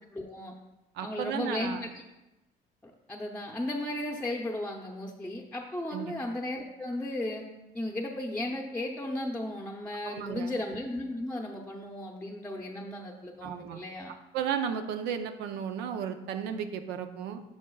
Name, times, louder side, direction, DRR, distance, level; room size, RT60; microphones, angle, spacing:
voice 1, 0.1-0.5 1.0-1.8 2.8-7.4 7.7-14.1, left 1 dB, 10° left, -1 dB, 0.7 m, -35 dB
voice 2, 0.9-1.8 5.9-6.1 10.0-10.5 13.4-13.8 14.3-17.4, right 8 dB, 85° right, 8 dB, 0.6 m, -34 dB
12.5 x 4.9 x 2.3 m, 1.0 s
cardioid pair, 110°, 17 cm